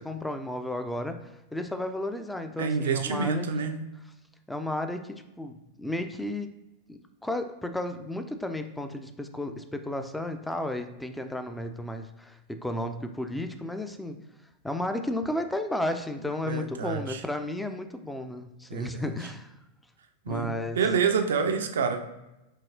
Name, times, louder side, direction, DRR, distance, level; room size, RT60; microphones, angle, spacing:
voice 1, 0.0-3.5 4.5-6.5 6.9-14.2 14.6-19.5 20.3-20.8, left 1 dB, 5° left, 7 dB, 0.4 m, -33 dB
voice 2, 2.6-3.8 16.5-17.2 18.7-19.1 20.3-22.0, right 6 dB, 65° right, 6 dB, 0.4 m, -27 dB
4.6 x 2.8 x 2.7 m, 0.95 s
figure-of-eight pair, 90°, 0 cm